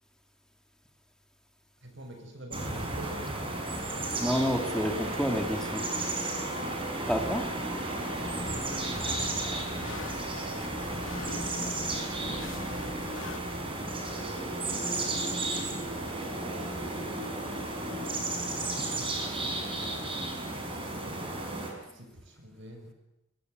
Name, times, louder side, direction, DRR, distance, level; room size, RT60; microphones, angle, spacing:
voice 1, 1.8-3.3 12.5-13.2 14.7-16.1 16.9-17.2 18.2-19.6 20.5-21.3 21.9-22.9, right 1 dB, 65° right, 5 dB, 6.7 m, -47 dB
sound 1, 2.5-21.7, right 2 dB, 25° right, 5.7 m, -33 dB
voice 2, 4.2-5.9 7.1-7.5, equal, 5° left, 3 dB, 2.8 m, -29 dB
sound 2, 8.4-13.4, left 3 dB, 85° left, 2.7 m, -45 dB
27.5 x 22.0 x 8.2 m, 0.92 s
head